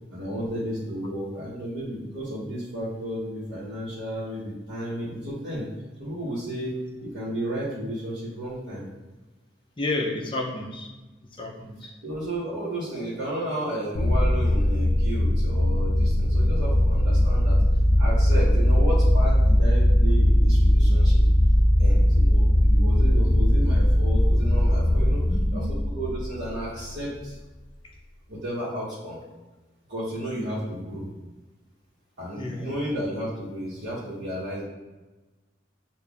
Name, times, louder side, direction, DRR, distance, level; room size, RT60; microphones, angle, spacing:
voice 1, 0.1-5.7 6.0-6.7 7.0-8.9 12.0-17.6 18.0-21.3 21.8-25.3 25.5-27.3 28.3-29.2 29.9-31.1 32.2-34.6, equal, 70° right, -10 dB, 1.1 m, -33 dB
voice 2, 9.8-10.9 11.3-11.9 25.0-25.7 32.4-32.8, left 2 dB, 25° left, 0 dB, 0.5 m, -31 dB
sound 1, 13.9-26.8, equal, 80° left, 0.5 m, -20 dB
6.8 x 2.5 x 2.4 m, 1.1 s
head